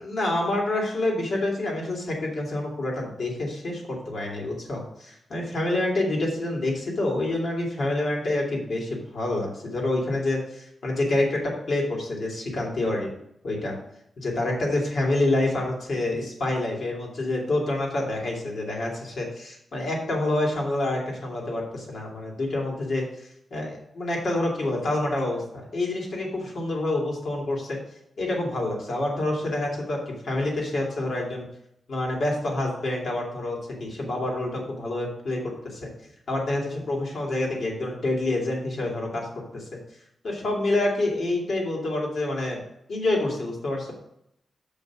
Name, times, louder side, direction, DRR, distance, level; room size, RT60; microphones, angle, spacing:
voice 1, 0.0-13.1 13.4-13.7 14.2-27.8 28.2-31.5 31.9-35.9 36.3-39.3 39.5-39.6 40.2-42.6 42.9-43.9, left 2 dB, 55° left, -2 dB, 2.5 m, -27 dB
6.7 x 5.2 x 6.1 m, 0.76 s
wide cardioid pair, 160°, 0 cm